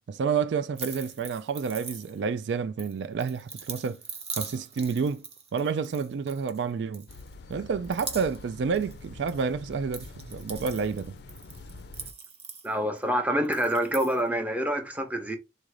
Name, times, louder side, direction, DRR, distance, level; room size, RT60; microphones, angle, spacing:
voice 1, 0.1-4.0 4.3-5.2 5.5-7.1 7.5-11.2, right 5 dB, 80° right, 0.3 m, -29 dB
sound 1, 0.7-2.4 2.8-6.6 6.9-7.5 7.8-8.5 8.7-9.4 9.7-13.0 13.4-14.2, right 5 dB, 35° right, 0.9 m, -41 dB
sound 2, 7.1-12.1, left 3 dB, 65° left, 0.4 m, -45 dB
voice 2, 12.6-15.4, equal, 10° right, 0.7 m, -27 dB
3.9 x 2.5 x 4.7 m
head